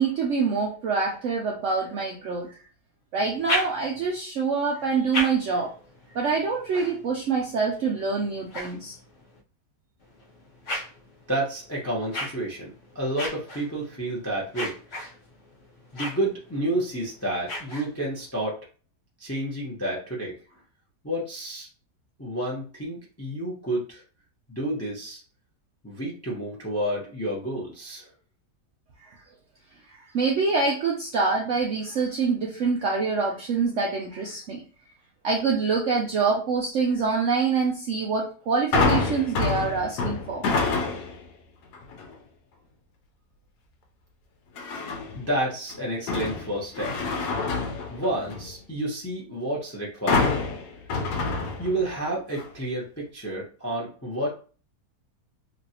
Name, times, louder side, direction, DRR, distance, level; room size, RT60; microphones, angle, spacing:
voice 1, 0.0-2.6 3.1-5.7 6.1-9.0 30.1-34.6 35.2-40.5, right 4 dB, 70° right, -1 dB, 0.7 m, -25 dB
sound 1, 3.2-4.2 4.8-9.4 10.0-18.3, left 1 dB, 55° left, 0.8 m, -37 dB
voice 2, 11.3-15.1 15.9-18.6 19.2-20.6 21.0-21.7 22.2-24.0 24.5-25.2 25.8-28.1 45.1-47.0 47.9-50.4 51.6-54.3, right 1 dB, 15° left, -3 dB, 0.5 m, -30 dB
sound 2, 38.7-41.2 41.7-42.1 44.6-45.2 45.7-48.5 50.1-52.0 52.4-52.5, left 4 dB, 75° left, 1.2 m, -27 dB
3.0 x 2.6 x 2.7 m, 0.38 s
omnidirectional pair, 1.8 m